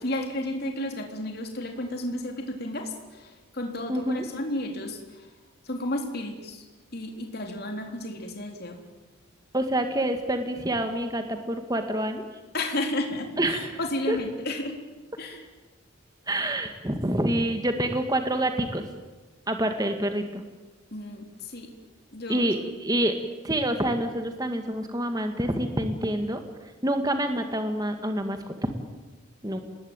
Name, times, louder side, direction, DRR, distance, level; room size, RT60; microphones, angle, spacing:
voice 1, 0.0-5.3 5.6-6.6 6.9-8.8 12.5-14.8 15.2-15.5 20.9-21.7 22.1-22.5, left 1 dB, 45° left, 3 dB, 3.7 m, -32 dB
voice 2, 3.9-4.2 9.5-12.2 13.4-13.7 14.1-14.2 16.3-18.8 19.5-20.4 22.3-23.1 23.4-26.4 26.8-28.5 29.4-29.6, right 1 dB, 20° right, 6 dB, 2.0 m, -27 dB
27.0 x 20.0 x 9.1 m, 1.2 s
head